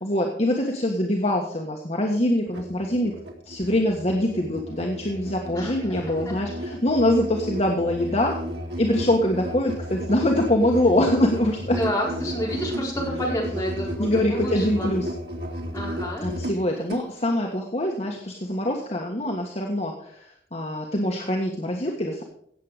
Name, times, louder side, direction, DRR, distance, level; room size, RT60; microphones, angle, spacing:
voice 1, 0.0-3.1 3.5-8.3 8.8-11.8 14.0-15.1 16.2-22.2, left 1 dB, 40° left, 0 dB, 1.5 m, -24 dB
Musical instrument, 2.5-17.1, equal, 80° right, 2.4 m, -33 dB
voice 2, 5.5-6.3 11.8-14.9 15.7-16.3, equal, 15° left, -4 dB, 4.9 m, -30 dB
17.0 x 7.8 x 5.0 m, 0.64 s
head